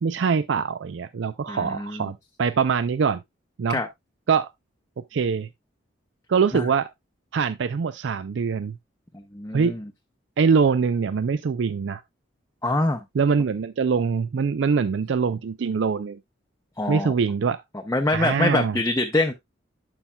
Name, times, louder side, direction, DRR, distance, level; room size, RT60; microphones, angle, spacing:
voice 1, 0.0-3.2 3.6-3.8 4.3-4.5 5.1-5.5 6.3-6.9 7.3-8.8 9.5-9.8 10.4-12.0 13.2-16.2 16.9-17.6 18.1-18.8, right 5 dB, 70° right, 0.4 m, -23 dB
voice 2, 1.5-2.1 3.7-3.9 6.5-6.7 9.1-9.8 12.6-13.0 16.8-17.1 17.9-19.3, left 2 dB, 15° left, 0.6 m, -25 dB
11.5 x 5.6 x 2.2 m
head